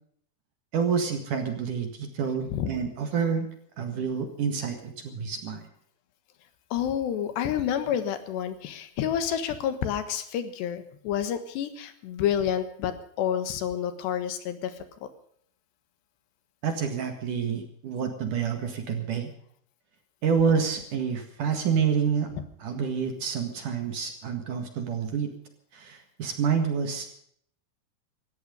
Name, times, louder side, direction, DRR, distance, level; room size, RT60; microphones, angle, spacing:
voice 1, 0.7-3.5 3.8-5.7 16.6-19.3 20.2-22.3 22.6-25.4 25.7-27.1, right 6 dB, 55° right, 6 dB, 2.8 m, -28 dB
voice 2, 6.7-15.1 22.3-22.4, left 9 dB, 75° left, 11 dB, 3.5 m, -29 dB
18.0 x 14.5 x 5.3 m, 0.64 s
omnidirectional pair, 5.1 m